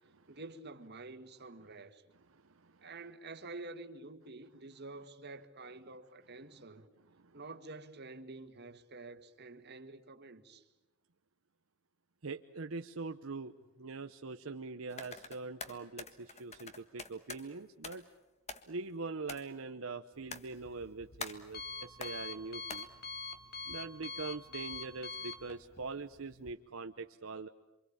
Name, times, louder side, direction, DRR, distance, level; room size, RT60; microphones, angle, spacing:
voice 1, 0.3-2.0 2.8-6.9 7.3-10.7, right 3 dB, 55° right, 1.8 m, -48 dB
voice 2, 2.3-2.9 7.2-7.4 12.2-18.1 18.7-22.9 23.7-27.5, right 4 dB, 80° right, 0.9 m, -43 dB
sound 1, 14.9-17.5 17.8-18.1 18.5-18.9 19.3-19.5 20.3-20.7 21.2-21.5 22.0-22.3 22.7-22.8, left 4 dB, 35° left, 1.7 m, -45 dB
Alarm, 20.1-26.5, left 4 dB, 50° left, 2.1 m, -46 dB
28.0 x 25.0 x 8.6 m
head